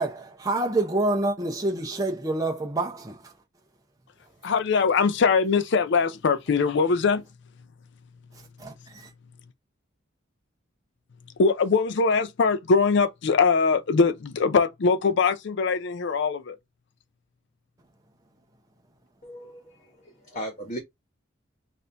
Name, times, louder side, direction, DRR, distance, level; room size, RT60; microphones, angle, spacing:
voice 1, 0.0-3.2 8.6-9.1, right 2 dB, 20° right, 0.7 m, -27 dB
voice 2, 4.4-7.2 11.4-16.6, left 5 dB, 65° left, 0.5 m, -22 dB
voice 3, 19.2-20.8, equal, 40° left, 1.2 m, -37 dB
4.2 x 2.6 x 3.3 m
head